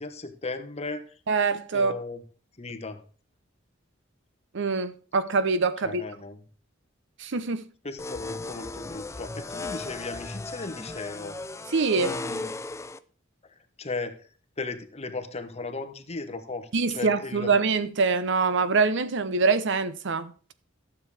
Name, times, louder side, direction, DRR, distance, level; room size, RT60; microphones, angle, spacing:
voice 1, 0.0-1.2 1.7-2.2 2.6-3.0 5.8-6.4 7.8-11.4 12.0-12.5 13.5-14.3 14.6-17.5, left 3 dB, 30° left, 1.1 m, -36 dB
voice 2, 1.3-1.9 4.5-6.0 7.2-7.7 11.7-12.1 16.7-20.5, right 4 dB, 65° right, 0.7 m, -24 dB
sound 1, 8.0-13.0, left 3 dB, 15° left, 0.4 m, -36 dB
12.0 x 7.1 x 4.8 m
head